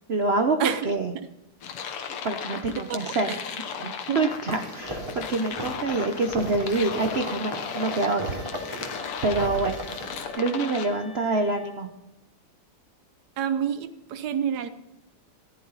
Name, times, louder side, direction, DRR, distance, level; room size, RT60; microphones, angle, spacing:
voice 1, 0.1-0.6 0.8-1.1 1.8-3.3 3.8-8.4 8.7-8.9 9.2-9.7 10.4-11.9, right 3 dB, 80° right, 6 dB, 0.5 m, -26 dB
voice 2, 0.6-1.3 2.5-3.4 4.1-4.2 13.4-14.7, right 8 dB, 60° right, 12 dB, 1.2 m, -29 dB
sound 1, 1.6-10.9, left 7 dB, 85° left, 2.0 m, -36 dB
sound 2, 4.3-10.3, equal, 10° right, 2.9 m, -36 dB
sound 3, 7.9-12.0, left 2 dB, 60° left, 2.3 m, -46 dB
14.5 x 11.0 x 4.0 m, 0.90 s
omnidirectional pair, 2.4 m